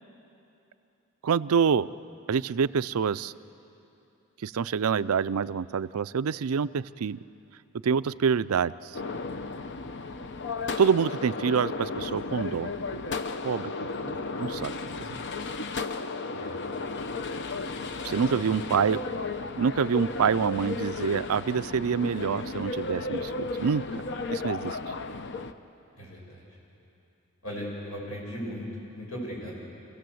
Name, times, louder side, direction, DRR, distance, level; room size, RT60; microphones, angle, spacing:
voice 1, 1.2-1.9 2.3-3.3 4.4-7.2 7.8-8.9 10.8-12.7 13.4-13.7 14.0-14.7 15.1-15.2 18.0-19.0 19.6-24.0 24.3-24.8, right 6 dB, 90° right, 16 dB, 0.5 m, -26 dB
sound 1, 8.9-25.5, left 3 dB, 55° left, 0.8 m, -34 dB
voice 2, 18.1-18.7 25.9-26.4 27.4-29.7, equal, 85° left, -3 dB, 6.8 m, -38 dB
27.5 x 16.5 x 7.8 m, 2.9 s
head